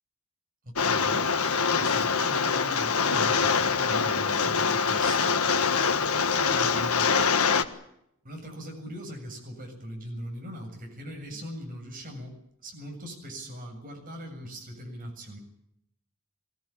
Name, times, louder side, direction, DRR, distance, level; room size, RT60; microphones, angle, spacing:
voice 1, 0.6-1.2 1.7-5.4 6.3-7.2 8.2-12.3 12.6-15.4, equal, 40° right, 2 dB, 7.2 m, -40 dB
Rain, 0.8-7.6, left 5 dB, 80° left, 1.6 m, -24 dB
23.5 x 18.0 x 8.8 m, 0.76 s
head